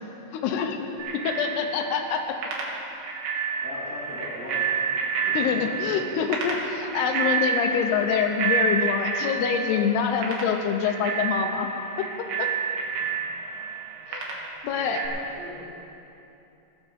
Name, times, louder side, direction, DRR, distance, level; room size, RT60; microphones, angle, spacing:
voice 1, 0.3-0.8 1.1-2.4 5.3-11.7 12.0-12.5 14.1-14.3 14.6-15.0, left 7 dB, 85° left, 4 dB, 2.8 m, -26 dB
Bicycle bell, 1.0-15.1, right 6 dB, 90° right, 3.8 m, -29 dB
voice 2, 3.6-4.9 5.2-5.6 14.7-15.6, left 1 dB, 5° left, -6 dB, 3.0 m, -40 dB
18.0 x 6.6 x 7.3 m, 2.8 s
omnidirectional pair, 4.6 m